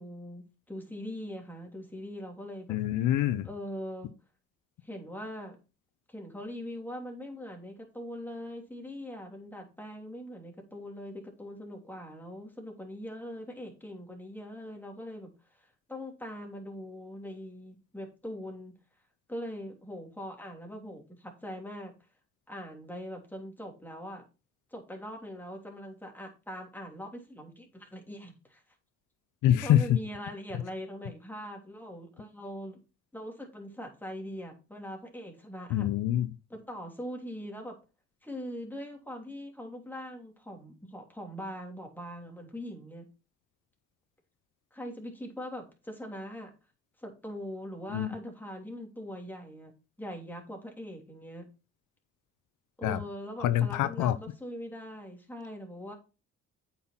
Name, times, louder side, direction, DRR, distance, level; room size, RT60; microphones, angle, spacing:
voice 1, 0.0-2.8 3.4-4.1 4.8-5.6 6.1-18.8 19.3-21.9 22.5-24.2 24.7-28.6 29.6-32.8 33.1-35.9 36.5-37.7 38.2-43.1 44.7-46.5 47.0-49.7 50.0-51.5 52.8-56.0, equal, 5° left, 3.1 m, -42 dB
voice 2, 2.7-3.5 29.4-30.0 35.7-36.3 47.9-48.1 52.8-53.0 53.4-54.2, left 11 dB, 85° left, 0.7 m, -25 dB
8.6 x 5.7 x 4.3 m
cardioid pair, 90°, 30 cm